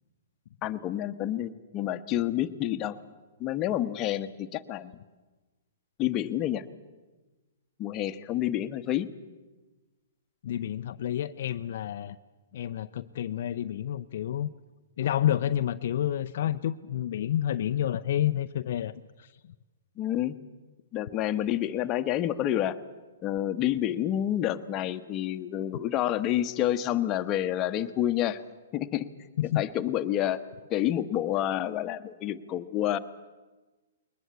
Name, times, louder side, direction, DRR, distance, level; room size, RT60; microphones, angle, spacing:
voice 1, 0.6-3.0 3.4-5.0 6.0-6.6 7.8-9.1 20.0-20.4 20.9-22.8 23.2-28.4 28.7-29.1 29.5-30.4 30.7-33.0, left 12 dB, 30° left, 7 dB, 1.2 m, -28 dB
voice 2, 10.4-12.2 12.5-14.5 15.0-18.9 19.2-19.3 29.4-29.6, left 11 dB, 60° left, 8 dB, 0.6 m, -29 dB
21.5 x 20.0 x 8.3 m, 1.2 s
hypercardioid pair, 135°, 0 cm